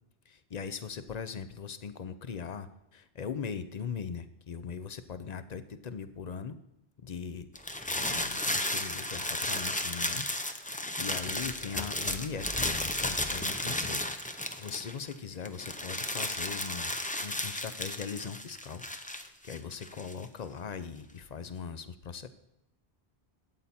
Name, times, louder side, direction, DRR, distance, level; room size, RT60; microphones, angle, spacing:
voice 1, 0.3-6.6 7.0-7.5 8.0-10.3 10.5-14.1 14.6-18.8 19.1-22.3, left 6 dB, 45° left, 12 dB, 0.7 m, -40 dB
sound 1, 7.5-15.1 15.4-20.2, left 1 dB, 10° left, 0.5 m, -34 dB
12.5 x 8.6 x 4.2 m, 0.87 s
omnidirectional pair, 1.1 m